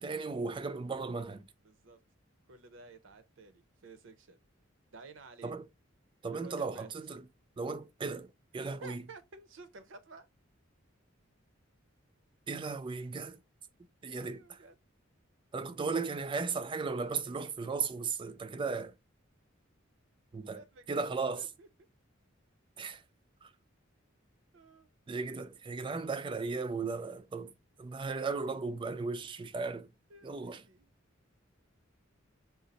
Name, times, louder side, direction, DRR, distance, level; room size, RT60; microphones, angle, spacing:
voice 1, 0.0-1.5 5.4-5.7 6.2-7.2 7.6-9.0 12.5-13.4 14.0-14.6 15.5-18.9 20.3-20.6 20.9-21.5 22.8-23.0 23.4-23.5 25.1-27.5 27.8-29.9 30.2-30.6, right 4 dB, 25° right, 0.3 m, -36 dB
voice 2, 1.6-2.0 2.5-4.4 4.9-5.5 6.3-6.9 8.6-10.3 14.2-14.7 20.5-21.0 21.4-21.7 24.5-24.9 30.1-30.9, right 3 dB, 70° right, 0.6 m, -52 dB
4.0 x 2.4 x 3.9 m
head